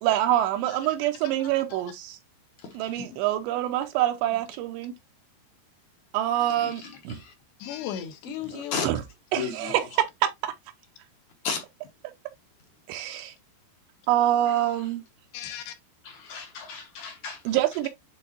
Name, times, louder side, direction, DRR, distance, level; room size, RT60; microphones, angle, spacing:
voice 1, 0.0-2.2 2.7-4.9 6.1-7.2 8.5-9.0 9.3-10.5 12.9-13.3 14.1-15.0 17.5-17.9, right 12 dB, 85° right, 2.9 m, -26 dB
voice 2, 2.6-3.0 6.5-7.3 8.7-8.9 9.3-9.8 11.4-11.6 14.5-14.6 16.0-17.6, left 5 dB, 65° left, 2.0 m, -35 dB
voice 3, 7.6-8.9 15.3-15.7, left 10 dB, 80° left, 3.3 m, -36 dB
10.5 x 3.9 x 2.6 m
omnidirectional pair, 5.0 m